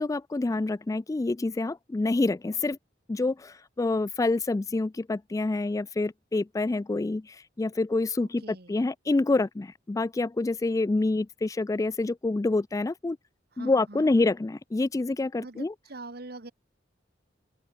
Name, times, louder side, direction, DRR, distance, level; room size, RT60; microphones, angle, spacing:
voice 1, 0.0-2.8 3.1-8.4 8.7-13.2 13.6-15.7, left 2 dB, 20° left, 0.3 m, -27 dB
voice 2, 8.2-8.8 13.5-14.1 15.4-16.5, right 2 dB, 55° right, 1.8 m, -43 dB
open air
head